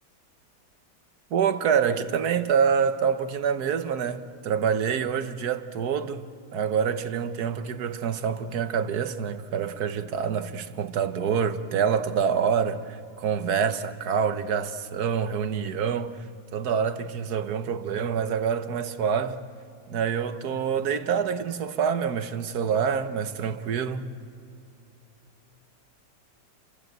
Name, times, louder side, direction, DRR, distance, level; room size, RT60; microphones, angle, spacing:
voice 1, 1.3-6.2 6.5-16.2 16.5-19.4 19.9-24.1, right 7 dB, 60° right, 1.5 m, -26 dB
29.5 x 23.0 x 8.1 m
omnidirectional pair, 2.0 m